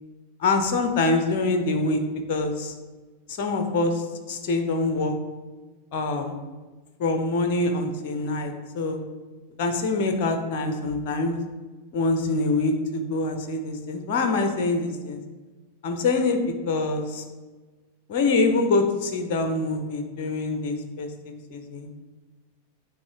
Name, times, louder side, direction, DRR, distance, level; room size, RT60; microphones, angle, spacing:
voice 1, 0.4-2.0 2.3-2.7 3.3-5.2 5.9-6.4 7.0-9.0 9.6-11.3 11.9-15.2 15.8-17.2 18.1-21.9, left 3 dB, 45° left, 6 dB, 0.8 m, -25 dB
9.4 x 3.2 x 4.8 m, 1.3 s
figure-of-eight pair, 90°, 0 cm